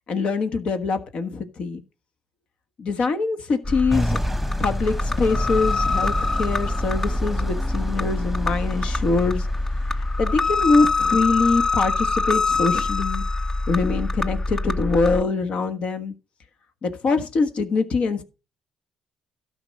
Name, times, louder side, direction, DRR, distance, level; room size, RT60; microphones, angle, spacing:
voice 1, 0.1-1.8 2.8-4.2 4.6-9.5 9.9-13.2 13.7-16.1 16.8-18.2, left 4 dB, 60° left, 1.4 m, -24 dB
sound 1, 3.6-15.2, left 3 dB, 20° left, 0.6 m, -25 dB
sound 2, 3.9-10.8, right 1 dB, 5° right, 1.1 m, -31 dB
12.5 x 5.2 x 5.3 m
hypercardioid pair, 55°, 2 cm